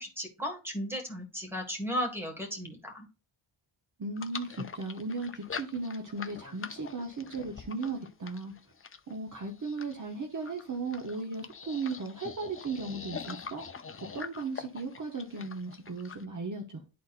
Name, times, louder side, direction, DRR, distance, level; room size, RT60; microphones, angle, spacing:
voice 1, 0.0-3.1, equal, 5° right, 1.7 m, -35 dB
voice 2, 4.0-8.5 9.1-13.6 14.1-16.8, right 3 dB, 40° right, 0.9 m, -36 dB
sound 1, 4.2-16.2, left 5 dB, 30° left, 0.5 m, -44 dB
11.5 x 4.1 x 2.5 m
wide cardioid pair, 140°, 48 cm